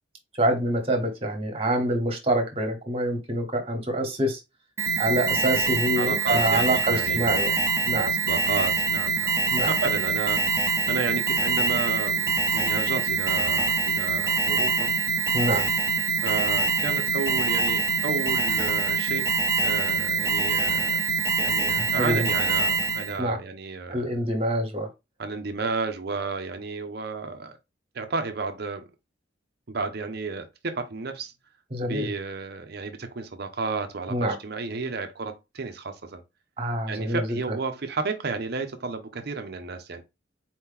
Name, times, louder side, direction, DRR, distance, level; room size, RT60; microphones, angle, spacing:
voice 1, 0.4-4.4 5.0-7.5 7.8-8.1 9.5-9.7 15.3-15.7 21.7-22.3 23.2-23.4 23.9-24.9 31.7-32.1 34.1-34.4 36.6-37.4, right 1 dB, 30° right, 1.3 m, -26 dB
Alarm, 4.8-23.2, right 4 dB, 15° right, 0.8 m, -24 dB
voice 2, 6.0-7.5 7.9-9.3 9.7-14.9 16.2-21.0 21.4-24.2 25.2-27.6 27.9-28.9 29.7-31.3 31.8-36.2 36.9-40.0, right 4 dB, 60° right, 0.7 m, -32 dB
4.4 x 2.9 x 3.7 m
head